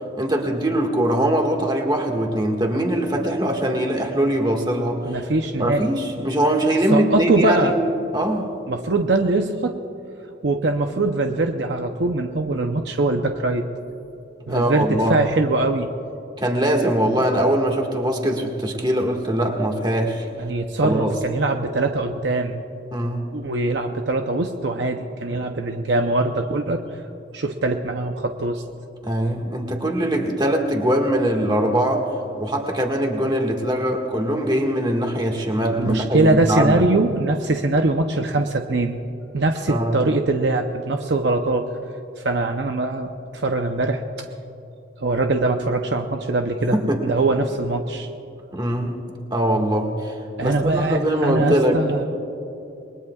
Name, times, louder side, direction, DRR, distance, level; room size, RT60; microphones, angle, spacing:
voice 1, 0.2-5.2 5.6-8.5 14.5-15.2 16.4-20.3 20.8-21.1 22.9-23.3 29.0-32.1 32.4-36.8 39.7-40.0 46.7-47.0 48.5-49.0 49.3-50.1 50.4-51.8, right 1 dB, 20° right, 2 dB, 1.8 m, -22 dB
voice 2, 5.0-5.8 6.9-7.7 8.7-9.8 10.4-13.7 14.5-15.9 20.4-22.6 23.3-27.0 27.3-28.6 35.8-39.0 39.3-41.7 42.2-44.3 45.0-48.1 50.4-52.1, right 2 dB, 60° right, 4 dB, 0.7 m, -22 dB
28.0 x 21.5 x 2.4 m, 2.9 s
head